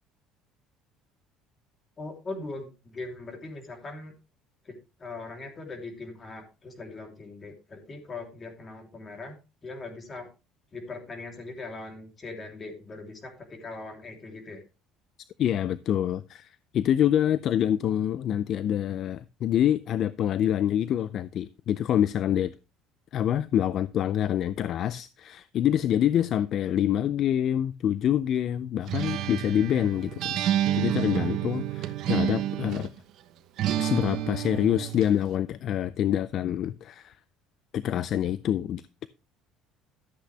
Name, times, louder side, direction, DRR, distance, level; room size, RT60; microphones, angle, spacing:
voice 1, 2.0-4.1 4.6-9.4 9.6-10.3 10.7-14.6, left 3 dB, 25° left, 3.2 m, -40 dB
voice 2, 15.4-22.5 23.1-30.4 30.7-32.9 33.8-37.2 37.7-39.1, left 10 dB, 45° left, 0.4 m, -26 dB
Acoustic guitar, 28.9-33.0 33.6-35.2, right 11 dB, 55° right, 1.1 m, -29 dB
13.0 x 8.1 x 3.3 m
cardioid pair, 140°, 0 cm